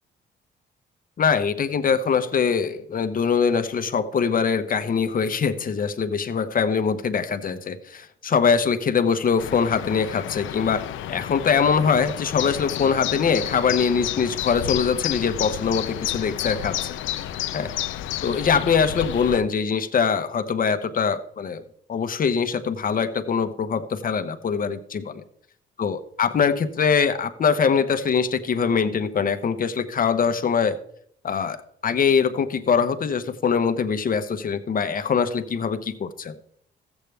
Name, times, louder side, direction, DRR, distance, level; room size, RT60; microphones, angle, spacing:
voice 1, 1.2-10.8 11.1-17.0 17.5-17.7 18.2-21.6 21.9-25.2 25.8-30.8 31.2-31.6 31.8-36.4, left 6 dB, 45° left, 10 dB, 0.9 m, -23 dB
sound 1, 9.4-19.4, left 12 dB, 80° left, 0.6 m, -31 dB
13.5 x 8.1 x 3.4 m, 0.68 s
cardioid pair, 90°, 20 cm